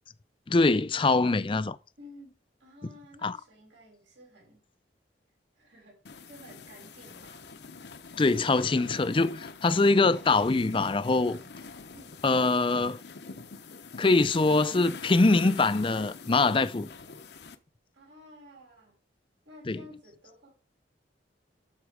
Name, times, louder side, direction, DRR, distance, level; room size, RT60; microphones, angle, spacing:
voice 1, 0.5-1.8 3.2-3.4 8.2-11.4 12.2-13.0 14.0-16.9 19.7-19.8, left 3 dB, 30° left, 0.4 m, -23 dB
voice 2, 2.0-2.3 2.6-4.6 5.5-7.5 11.9-12.2 17.9-18.9 19.4-20.5, left 1 dB, 85° right, 6.1 m, -52 dB
sound 1, 6.1-17.6, left 4 dB, 65° left, 0.8 m, -45 dB
12.0 x 4.3 x 4.9 m
head